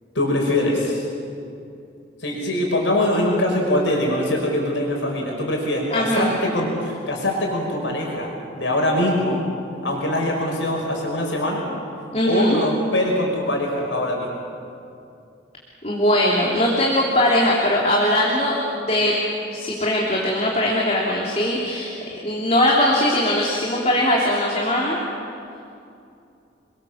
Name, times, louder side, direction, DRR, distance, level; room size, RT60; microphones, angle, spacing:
voice 1, 0.1-1.1 2.2-9.4 9.8-11.7 12.2-14.4, left 1 dB, 90° left, -1 dB, 5.4 m, -23 dB
voice 2, 5.9-6.3 12.1-12.6 15.8-19.2 19.5-25.0, left 1 dB, 35° left, -3 dB, 3.3 m, -20 dB
29.5 x 22.0 x 7.4 m, 2.6 s
head